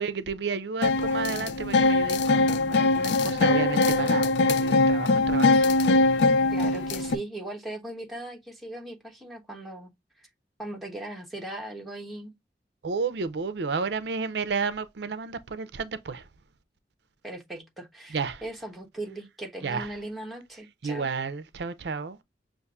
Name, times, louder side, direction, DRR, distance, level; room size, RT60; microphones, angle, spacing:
voice 1, 0.0-6.1 12.8-16.3 18.1-18.4 19.6-20.0 20.8-22.2, right 5 dB, 70° right, 0.5 m, -32 dB
sound 1, 0.8-7.2, left 3 dB, 80° left, 0.4 m, -22 dB
voice 2, 6.5-9.9 10.2-10.3 10.6-12.3 17.2-21.1, right 1 dB, ahead, 1.1 m, -38 dB
6.6 x 2.5 x 2.3 m
head